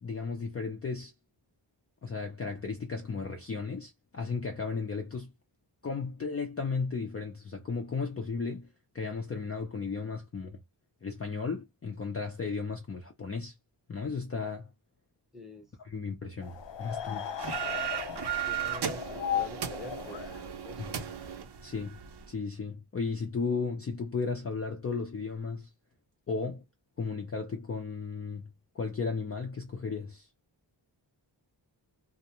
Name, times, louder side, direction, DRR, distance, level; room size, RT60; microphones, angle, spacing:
voice 1, 0.0-1.1 2.0-5.3 5.8-8.7 8.9-10.6 11.0-13.5 13.9-14.7 15.8-17.3 20.8-21.1 21.6-22.0 22.3-25.7 26.3-26.6 27.0-30.3, left 4 dB, 35° left, 0.5 m, -35 dB
voice 2, 15.3-15.7 17.6-17.8 18.5-20.9, left 1 dB, ahead, 0.9 m, -47 dB
sound 1, 16.4-21.3, left 9 dB, 75° left, 0.6 m, -37 dB
sound 2, 17.4-22.3, right 9 dB, 65° right, 0.6 m, -36 dB
2.4 x 2.1 x 2.9 m
wide cardioid pair, 115°, 44 cm